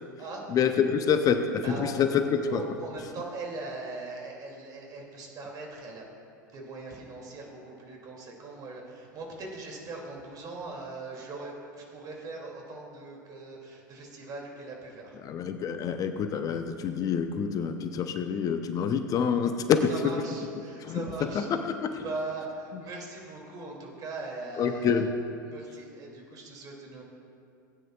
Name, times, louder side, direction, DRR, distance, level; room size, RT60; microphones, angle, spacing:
voice 1, 0.5-2.6 15.2-19.9 20.8-21.0 21.3-22.0 24.6-25.1, left 7 dB, 35° left, 8 dB, 0.7 m, -27 dB
voice 2, 1.6-2.1 2.5-6.0 6.5-15.2 19.9-21.5 22.0-25.0 25.4-27.0, right 3 dB, 40° right, 0 dB, 2.5 m, -40 dB
18.0 x 9.3 x 2.4 m, 2.5 s
hypercardioid pair, 85°, 10 cm